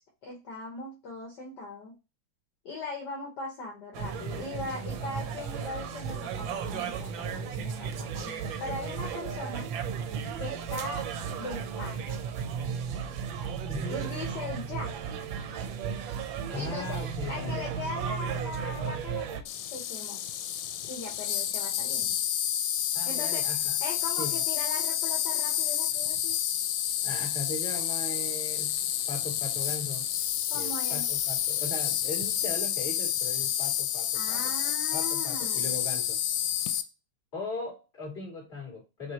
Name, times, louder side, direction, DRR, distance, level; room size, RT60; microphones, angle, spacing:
voice 1, 0.2-1.9 2.6-9.7 10.4-11.0 11.4-12.1 13.9-14.9 16.5-17.0 17.3-19.4 19.7-20.2 20.9-22.2 23.1-23.4 23.8-26.4 30.5-31.0 34.1-35.8, left 3 dB, 55° left, -2 dB, 1.6 m, -39 dB
sound 1, 3.9-19.4, right 7 dB, 75° right, 1.2 m, -34 dB
voice 2, 13.7-14.1 16.2-17.7 22.9-23.8 24.2-24.4 27.0-30.1 30.5-36.2 37.3-39.1, left 3 dB, 25° left, -3 dB, 2.7 m, -39 dB
Insect, 19.5-36.8, left 10 dB, 85° left, 1.5 m, -29 dB
5.3 x 2.8 x 2.8 m, 0.28 s
omnidirectional pair, 2.4 m